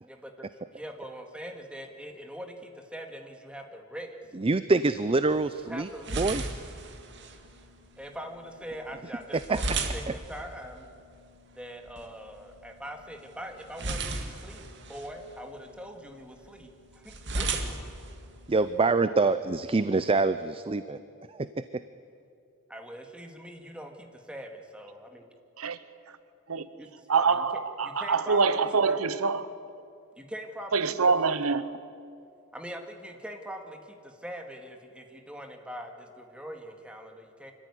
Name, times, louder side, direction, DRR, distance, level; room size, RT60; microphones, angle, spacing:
voice 1, 0.0-4.2 5.6-6.1 8.0-10.9 11.6-17.6 19.8-19.9 22.7-25.2 26.8-26.9 27.1-27.5 27.8-29.0 30.2-30.8 32.5-37.5, equal, 5° right, 2.0 m, -42 dB
voice 2, 4.3-6.4 9.3-9.6 18.5-21.0 21.3-21.8, right 3 dB, 25° right, 0.5 m, -26 dB
sound 1, 5.0-19.0, right 3 dB, 55° right, 2.1 m, -38 dB
voice 3, 27.1-29.5 30.7-31.8, right 4 dB, 80° right, 0.9 m, -25 dB
25.5 x 14.5 x 9.9 m
head